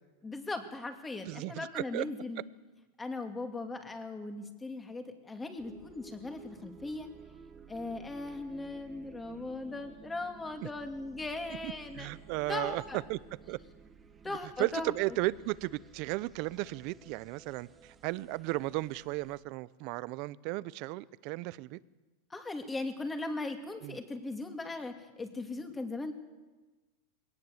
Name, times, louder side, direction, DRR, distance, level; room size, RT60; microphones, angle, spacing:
voice 1, 0.2-2.4 3.0-7.1 7.7-12.1 12.5-13.0 14.2-15.2 22.3-26.1, left 2 dB, 10° left, 6 dB, 2.4 m, -38 dB
voice 2, 1.2-2.1 10.6-10.7 11.6-12.8 13.1-13.2 13.5-13.6 14.3-21.8 23.8-24.0, right 20 dB, 50° right, 19 dB, 0.7 m, -35 dB
sound 1, 5.6-19.4, right 5 dB, 15° right, 1.6 m, -54 dB
22.0 x 18.0 x 8.0 m, 1.2 s
supercardioid pair, 140°, 0 cm